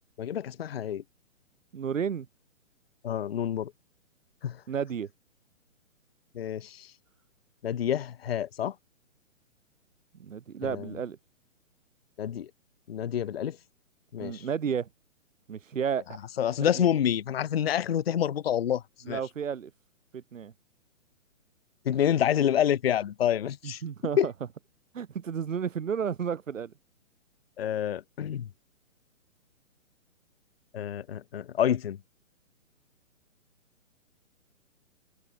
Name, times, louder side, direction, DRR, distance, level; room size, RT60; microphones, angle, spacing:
voice 1, 0.2-1.0 3.0-3.7 4.4-4.6 6.3-6.9 7.6-8.7 10.6-10.9 12.2-12.5 12.9-13.6 14.1-14.5 16.4-19.2 21.9-23.8 24.2-24.3 27.6-28.5 30.7-32.0, left 10 dB, 50° left, 0.5 m, -28 dB
voice 2, 1.7-2.3 4.7-5.1 10.2-11.2 14.2-14.9 15.5-16.2 16.8-16.9 19.1-19.7 20.1-20.5 23.6-24.3 24.9-26.7, right 7 dB, 70° right, 2.6 m, -32 dB
hypercardioid pair, 175°, 40 cm